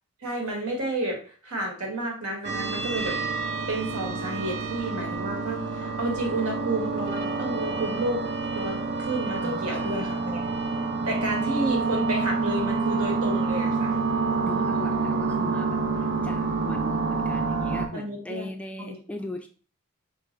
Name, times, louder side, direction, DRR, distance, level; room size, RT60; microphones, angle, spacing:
voice 1, 0.2-3.2 3.7-8.3 8.5-10.4 11.0-14.0 17.9-18.5 18.8-18.9, right 1 dB, 80° right, 0 dB, 1.5 m, -31 dB
sound 1, 2.4-17.9, right 4 dB, 50° right, 0.6 m, -28 dB
voice 2, 9.4-10.4 14.4-19.5, left 1 dB, 5° left, 5 dB, 0.3 m, -38 dB
3.7 x 3.6 x 3.2 m, 0.40 s
head